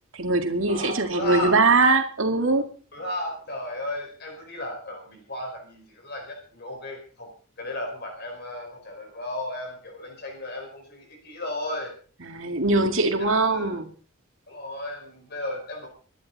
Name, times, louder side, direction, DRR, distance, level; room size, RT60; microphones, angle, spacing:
voice 1, 0.1-2.7 12.2-13.9, right 3 dB, 70° right, 6 dB, 2.2 m, -22 dB
voice 2, 0.7-1.5 2.9-7.3 7.6-11.9 13.5-13.7 14.5-15.9, left 1 dB, 50° left, 3 dB, 5.0 m, -34 dB
25.0 x 11.0 x 4.1 m, 0.41 s
head